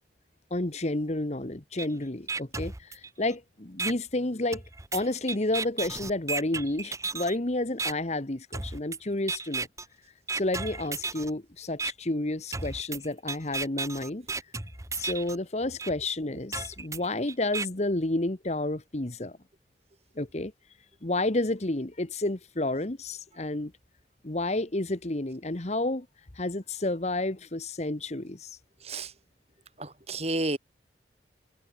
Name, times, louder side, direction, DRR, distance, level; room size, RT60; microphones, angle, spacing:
voice 1, 0.5-4.6 4.9-9.7 10.3-14.3 15.0-19.4 20.2-20.5 21.0-23.7 24.2-26.1 26.4-28.6, left 2 dB, 35° left, 1.2 m, -30 dB
sound 1, 1.8-1.9 2.3-3.3 3.8-3.9 4.5-7.4 7.8-7.9 8.5-9.0 9.3-9.9 10.3-11.3 11.8-11.9 12.5-15.4 15.8-15.9 16.5-17.7, right 4 dB, 15° right, 1.2 m, -34 dB
voice 2, 28.8-29.1 29.8-30.6, right 2 dB, 35° right, 4.1 m, -31 dB
head